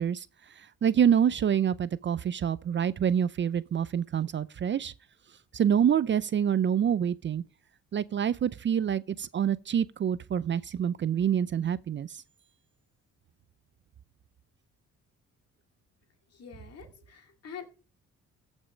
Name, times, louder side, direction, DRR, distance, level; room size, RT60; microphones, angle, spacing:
voice 1, 0.0-4.9 5.5-7.4 7.9-12.2, right 8 dB, 40° right, 0.5 m, -27 dB
voice 2, 16.4-16.9 17.1-17.7, left 7 dB, 55° left, 2.2 m, -44 dB
14.5 x 5.4 x 5.0 m
cardioid pair, 90°, 30 cm